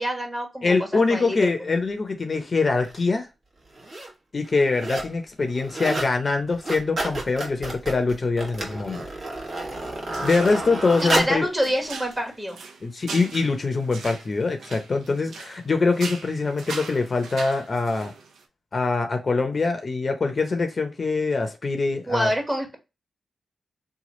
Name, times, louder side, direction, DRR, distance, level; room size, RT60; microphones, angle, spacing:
voice 1, 0.0-1.5 11.1-12.6 22.1-22.8, equal, 20° right, 1.2 m, -26 dB
voice 2, 0.6-3.3 4.3-9.0 10.2-11.5 12.8-18.1 18.7-22.3, left 3 dB, 45° left, 0.6 m, -24 dB
sound 1, 2.8-3.0 3.7-4.1 4.4-5.2 5.5-6.1 6.5-11.5 12.1-12.2, right 2 dB, 55° right, 1.1 m, -31 dB
sound 2, 10.1-10.7 11.0-15.6 15.9-18.4, right 4 dB, 90° right, 0.5 m, -39 dB
3.0 x 2.3 x 4.1 m
cardioid pair, 70°, 0 cm